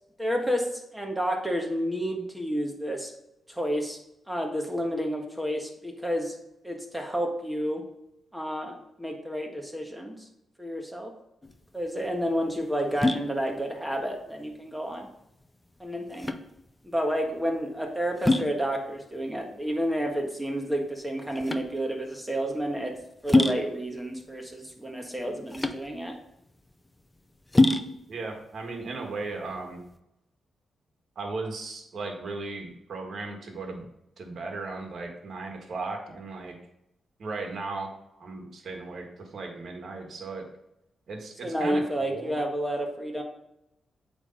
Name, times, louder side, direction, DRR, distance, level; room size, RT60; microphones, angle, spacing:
voice 1, 0.2-3.1 3.5-4.0 4.3-6.3 6.6-7.8 8.3-10.2 10.6-11.1 11.7-15.1 15.8-16.3 16.8-22.9 23.2-26.1 41.4-43.2, equal, 5° right, 2 dB, 1.4 m, -30 dB
sound 1, 11.4-30.0, left 2 dB, 15° left, 0.5 m, -29 dB
voice 2, 28.1-29.8 31.1-33.9 34.2-36.6 37.2-40.4 41.1-42.4, right 3 dB, 60° right, 2 dB, 1.7 m, -36 dB
8.3 x 3.5 x 5.4 m, 0.84 s
cardioid pair, 90°, 0 cm